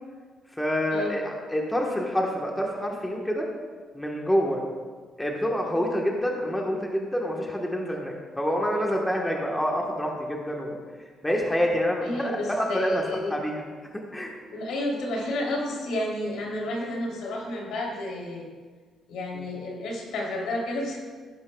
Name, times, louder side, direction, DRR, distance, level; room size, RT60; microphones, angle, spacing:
voice 1, 0.5-3.5 3.9-4.6 5.2-13.6 13.9-14.3 19.3-19.5, equal, 5° left, -1 dB, 1.2 m, -27 dB
voice 2, 12.0-13.3 14.5-18.5 19.1-21.0, left 1 dB, 80° left, -2 dB, 3.1 m, -31 dB
16.0 x 12.0 x 2.3 m, 1.5 s
cardioid pair, 150°, 0 cm